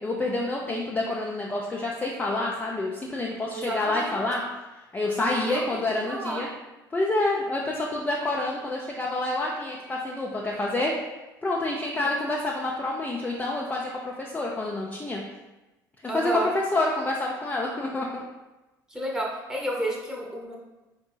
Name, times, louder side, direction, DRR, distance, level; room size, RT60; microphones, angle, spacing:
voice 1, 0.0-4.4 4.9-6.5 6.9-10.9 11.4-15.2 16.0-18.2, left 2 dB, 15° left, -2 dB, 0.4 m, -28 dB
voice 2, 3.5-4.2 5.4-5.8 6.1-6.4 16.1-16.5 18.9-20.6, right 1 dB, 5° right, -3 dB, 0.9 m, -31 dB
4.3 x 2.7 x 2.4 m, 1.1 s
figure-of-eight pair, 60°, 11 cm